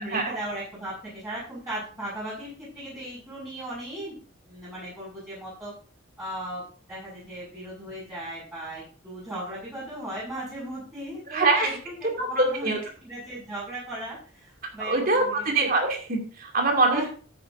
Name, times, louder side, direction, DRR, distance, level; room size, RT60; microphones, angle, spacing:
voice 1, 0.0-4.2 4.5-5.7 6.2-15.4 16.8-17.1, right 1 dB, 15° right, -10 dB, 6.4 m, -37 dB
voice 2, 11.3-11.7 12.2-12.8 14.8-17.0, right 2 dB, 45° right, 1 dB, 2.7 m, -23 dB
12.5 x 9.6 x 2.7 m, 0.41 s
head